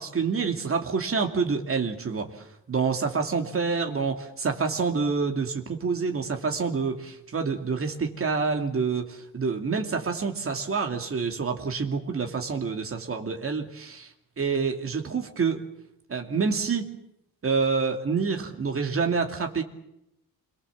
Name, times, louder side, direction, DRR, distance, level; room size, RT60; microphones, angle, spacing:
voice 1, 0.0-14.1 14.4-15.6 16.1-16.9 17.4-19.6, right 5 dB, 35° right, 4 dB, 2.7 m, -27 dB
27.5 x 23.0 x 7.4 m, 0.82 s
wide cardioid pair, 180°, 37 cm